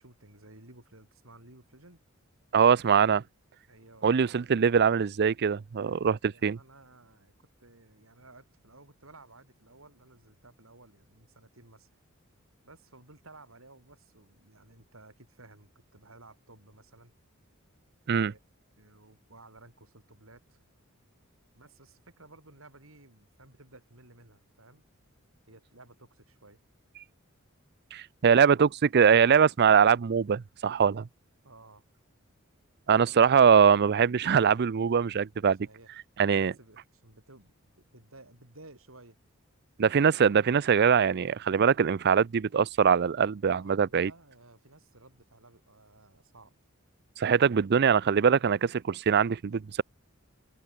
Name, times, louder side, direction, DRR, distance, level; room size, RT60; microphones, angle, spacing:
voice 1, 0.0-2.0 3.7-4.5 6.3-11.9 12.6-17.1 18.1-18.4 18.8-20.6 21.6-24.9 25.5-26.6 31.4-31.8 35.6-35.9 36.3-39.2 43.5-46.5, right 2 dB, 70° right, 7.1 m, -55 dB
voice 2, 2.5-3.2 4.0-6.6 18.1-18.3 27.9-31.0 32.9-35.6 36.2-36.5 39.8-44.1 47.2-49.8, right 7 dB, 50° right, 0.4 m, -22 dB
open air
head